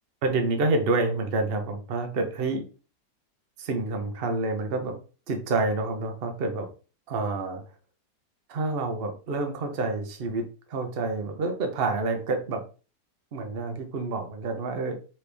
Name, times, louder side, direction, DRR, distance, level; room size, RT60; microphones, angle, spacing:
voice 1, 0.2-2.6 3.6-5.0 5.3-6.7 7.1-7.6 8.5-12.6 13.3-15.0, right 3 dB, 45° right, 5 dB, 0.7 m, -28 dB
4.4 x 3.2 x 3.4 m, 0.36 s
omnidirectional pair, 2.0 m